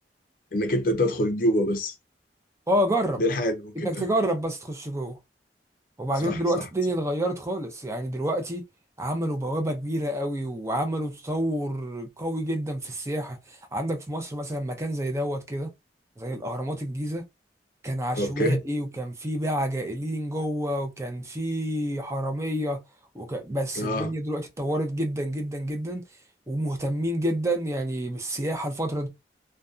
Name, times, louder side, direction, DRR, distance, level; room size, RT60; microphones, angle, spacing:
voice 1, 0.5-1.9 3.2-4.0 6.2-6.6 18.2-18.6 23.8-24.1, equal, 50° left, 0.5 m, -25 dB
voice 2, 2.7-3.2 3.8-5.2 6.0-8.6 9.0-15.7 16.2-17.2 17.8-22.8 23.1-26.0 26.5-29.1, right 1 dB, 15° right, 0.5 m, -28 dB
2.6 x 2.2 x 2.4 m
head